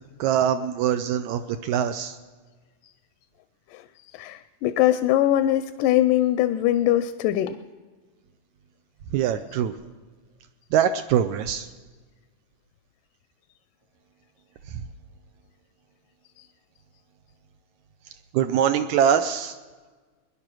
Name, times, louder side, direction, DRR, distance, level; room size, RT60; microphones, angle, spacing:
voice 1, 0.2-2.2 9.1-9.7 10.7-11.7 18.3-19.6, right 9 dB, 75° right, 9 dB, 1.8 m, -23 dB
voice 2, 4.1-7.6, left 13 dB, 85° left, 12 dB, 2.1 m, -22 dB
21.0 x 10.5 x 6.1 m, 1.4 s
omnidirectional pair, 3.7 m